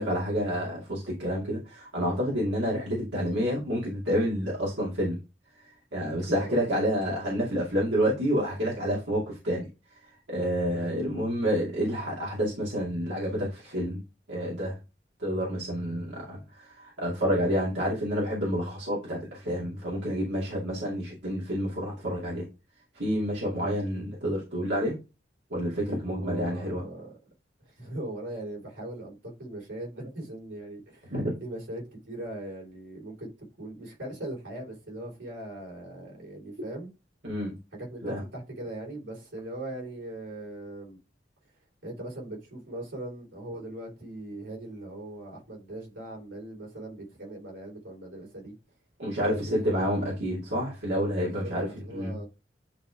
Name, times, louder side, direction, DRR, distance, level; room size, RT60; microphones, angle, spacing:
voice 1, 0.0-5.2 5.9-9.7 10.3-14.0 14.3-14.8 15.2-22.5 22.9-24.9 25.5-26.8 31.1-31.3 37.2-37.6 38.0-38.2 49.0-51.7 51.9-52.2, equal, 75° right, 2.5 m, -29 dB
voice 2, 6.3-6.6 10.7-10.9 26.1-27.1 27.6-31.1 31.4-33.3 33.6-36.9 37.8-41.0 41.8-48.5 49.2-50.2 51.2-52.3, right 1 dB, 90° right, 4.2 m, -40 dB
9.9 x 3.5 x 3.5 m
head